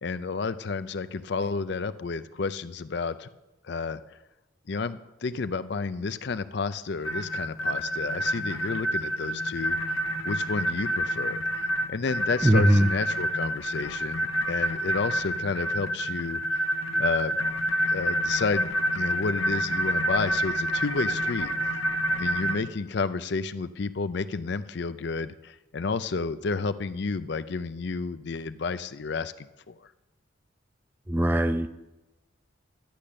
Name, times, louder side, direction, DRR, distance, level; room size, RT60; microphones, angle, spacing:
voice 1, 0.0-3.3 3.6-4.0 4.7-10.0 10.2-11.4 11.9-16.6 17.0-17.4 17.9-21.8 22.2-29.8, left 4 dB, 55° left, 13 dB, 0.5 m, -31 dB
sound 1, 7.0-22.6, equal, 75° left, 1.0 m, -28 dB
voice 2, 12.4-12.9 31.1-31.7, equal, 10° right, 10 dB, 0.4 m, -20 dB
12.0 x 6.4 x 8.6 m, 0.99 s
head